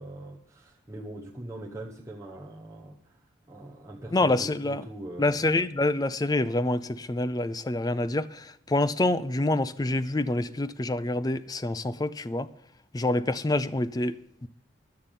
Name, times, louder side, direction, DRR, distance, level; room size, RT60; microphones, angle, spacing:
voice 1, 0.0-3.2 3.5-5.5, right 1 dB, 15° right, 1.0 m, -42 dB
voice 2, 4.1-4.8 5.2-12.5 12.9-14.5, left 2 dB, 20° left, 0.4 m, -27 dB
11.5 x 6.8 x 9.0 m
head